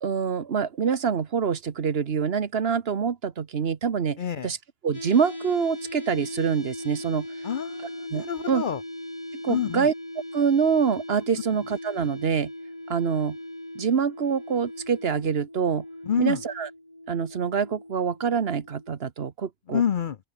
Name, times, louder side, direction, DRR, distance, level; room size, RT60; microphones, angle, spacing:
voice 1, 0.0-4.6 4.8-7.3 8.1-8.6 9.4-9.9 10.3-12.5 12.9-13.4 13.7-15.8 16.2-16.7 17.1-19.8, right 6 dB, 60° right, 1.3 m, -25 dB
voice 2, 4.2-4.5 7.4-8.8 9.5-9.9 16.1-16.4 19.7-20.2, left 8 dB, 55° left, 0.7 m, -27 dB
sound 1, 4.9-18.9, left 1 dB, 30° left, 4.9 m, -39 dB
open air
omnidirectional pair, 1.2 m